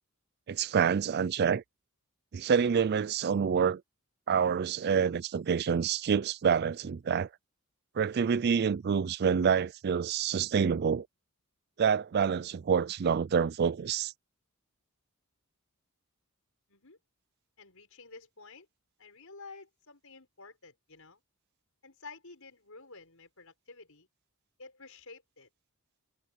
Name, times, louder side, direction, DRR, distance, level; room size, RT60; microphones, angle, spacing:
voice 1, 0.5-1.6 2.3-3.8 4.3-7.3 8.0-11.1 11.8-14.1, right 6 dB, 50° right, 0.4 m, -27 dB
voice 2, 17.6-18.7 19.0-21.2 21.8-24.1 24.6-25.5, left 3 dB, 70° left, 6.9 m, -51 dB
head